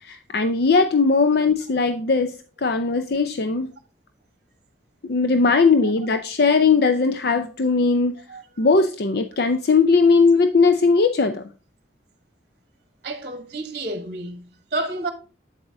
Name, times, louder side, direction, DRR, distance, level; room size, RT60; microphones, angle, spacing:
voice 1, 0.0-3.7 5.0-8.2 8.6-11.4, left 4 dB, 55° left, 0.6 m, -19 dB
voice 2, 13.0-15.1, right 2 dB, 45° right, 1.1 m, -30 dB
8.1 x 8.0 x 2.6 m
head